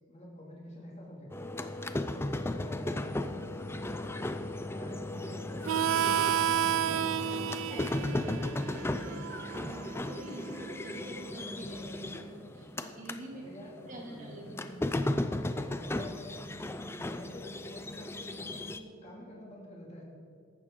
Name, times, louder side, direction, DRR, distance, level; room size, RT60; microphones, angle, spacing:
voice 1, 0.1-1.5 2.0-3.9 4.2-7.5 7.8-8.7 13.3-15.3 15.6-16.4 16.8-20.0, left 1 dB, 30° left, -4 dB, 2.4 m, -48 dB
sound 1, 1.3-13.2 13.6-18.8, left 1 dB, 10° left, 0.4 m, -36 dB
Harmonica, 5.7-10.9, right 9 dB, 70° right, 0.3 m, -32 dB
voice 2, 7.5-8.1 9.0-13.4 13.9-14.7, right 1 dB, 35° right, -1 dB, 2.2 m, -46 dB
15.0 x 11.0 x 3.8 m, 2.3 s
head